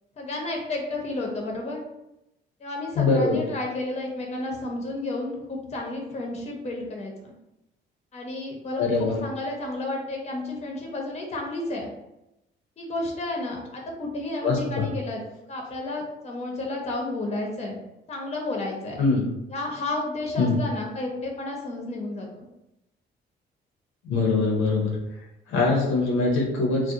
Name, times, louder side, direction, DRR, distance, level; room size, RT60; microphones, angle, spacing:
voice 1, 0.2-1.8 2.6-7.3 8.1-11.9 12.8-15.2 15.5-17.8 18.1-19.0 19.5-22.5, left 2 dB, 35° left, 0 dB, 0.7 m, -31 dB
voice 2, 2.9-3.4 8.8-9.2 14.4-14.9 19.0-19.3 20.4-20.6 24.0-25.0 25.5-26.9, left 3 dB, 90° left, -1 dB, 0.6 m, -23 dB
2.4 x 2.1 x 2.7 m, 0.90 s
cardioid pair, 90°, 20 cm